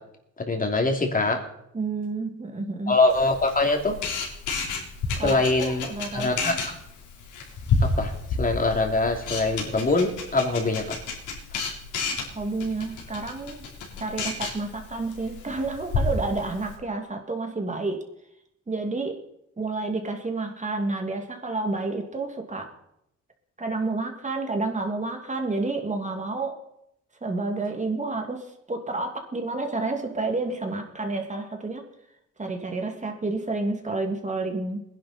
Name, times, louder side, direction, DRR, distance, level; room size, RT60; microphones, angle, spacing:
voice 1, 0.5-1.4 2.9-3.9 5.2-5.9 6.1-6.7 7.8-8.1 8.4-10.9, left 2 dB, 30° left, 3 dB, 3.1 m, -23 dB
voice 2, 1.7-2.9 5.2-6.6 12.3-13.6 14.0-18.0 18.7-19.2 19.6-22.7 23.6-26.6 27.2-31.8 32.4-34.8, right 3 dB, 25° right, 4 dB, 2.5 m, -30 dB
Camera, 3.1-16.7, left 3 dB, 80° left, 4.2 m, -31 dB
20.5 x 11.0 x 4.4 m, 0.80 s
cardioid pair, 90°, 30 cm